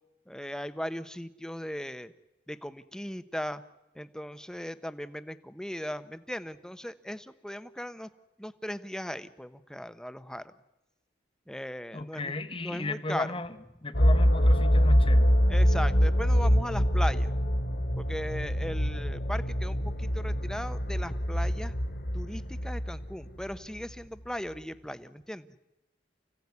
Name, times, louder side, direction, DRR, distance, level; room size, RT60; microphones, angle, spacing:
voice 1, 0.3-2.1 2.5-3.6 3.9-8.1 8.4-10.5 11.5-12.3 12.6-13.4 15.5-17.3 18.0-21.7 22.1-25.5, equal, 5° left, 0.9 m, -38 dB
voice 2, 11.9-13.5 13.8-15.4, left 2 dB, 30° left, 1.3 m, -35 dB
sound 1, 13.9-23.8, equal, 55° left, 2.6 m, -25 dB
29.5 x 16.5 x 9.7 m
head